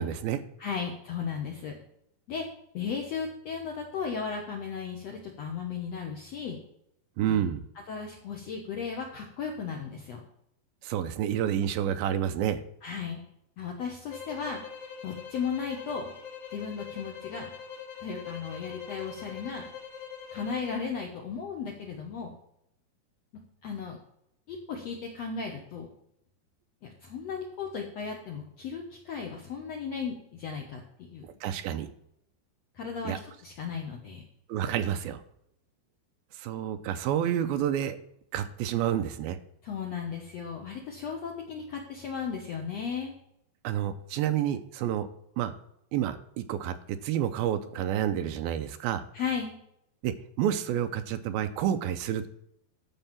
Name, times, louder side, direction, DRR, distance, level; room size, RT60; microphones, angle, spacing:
voice 1, 0.0-0.4 7.2-7.6 10.8-12.6 31.4-31.9 33.0-33.2 34.5-35.2 36.4-38.0 38.3-39.4 43.6-45.1 45.4-45.5 45.9-49.0 50.0-52.3, right 10 dB, 80° right, 9 dB, 2.2 m, -29 dB
voice 2, 0.6-1.7 2.3-2.5 2.7-6.6 7.3-7.4 7.9-10.2 12.8-13.2 13.6-14.6 15.0-16.1 16.5-17.5 18.0-19.7 20.3-22.3 23.6-24.0 24.5-25.9 26.8-31.2 32.7-34.2 39.6-43.1 49.1-49.5, left 6 dB, 85° left, 1 dB, 1.4 m, -35 dB
sound 1, 14.1-20.9, left 7 dB, 65° left, 4.5 m, -43 dB
12.5 x 4.6 x 7.3 m, 0.75 s
omnidirectional pair, 4.8 m